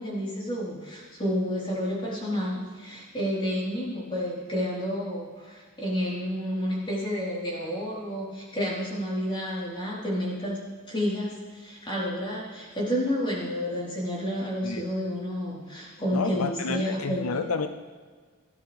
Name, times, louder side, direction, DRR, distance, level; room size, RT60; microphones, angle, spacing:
voice 1, 0.0-10.6 10.9-17.4, equal, 25° left, -6 dB, 4.0 m, -30 dB
voice 2, 16.1-17.7, left 4 dB, 85° left, 8 dB, 0.6 m, -30 dB
17.5 x 11.0 x 3.5 m, 1.5 s
head